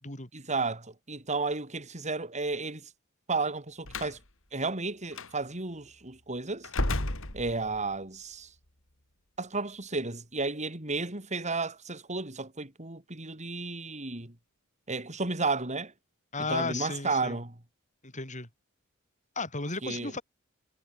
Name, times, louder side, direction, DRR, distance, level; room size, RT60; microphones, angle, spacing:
voice 1, 0.3-2.9 3.3-4.2 4.5-6.7 7.3-8.5 9.4-14.3 14.9-15.9 16.5-17.5 19.8-20.1, right 3 dB, 35° right, 4.2 m, -33 dB
Slam, 3.8-4.2 5.1-5.3 6.6-7.9, left 1 dB, 65° left, 4.6 m, -32 dB
voice 2, 16.3-17.4 18.0-18.5 19.4-20.2, left 3 dB, 35° left, 7.3 m, -34 dB
head